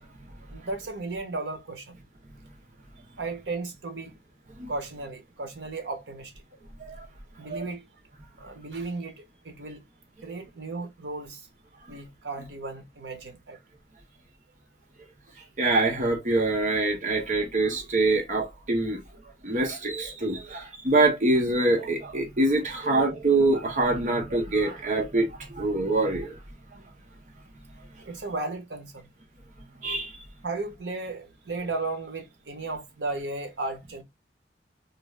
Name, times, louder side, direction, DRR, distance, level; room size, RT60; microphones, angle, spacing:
voice 1, 0.5-2.0 3.2-4.1 4.7-6.3 7.4-7.8 8.4-9.8 10.2-11.5 11.9-13.6 28.0-29.1 30.4-34.0, right 3 dB, 80° right, 0.7 m, -35 dB
voice 2, 15.6-19.0 19.4-26.4 26.7-26.8 29.8-30.1, right 2 dB, 45° right, 0.8 m, -25 dB
2.4 x 2.3 x 3.1 m
head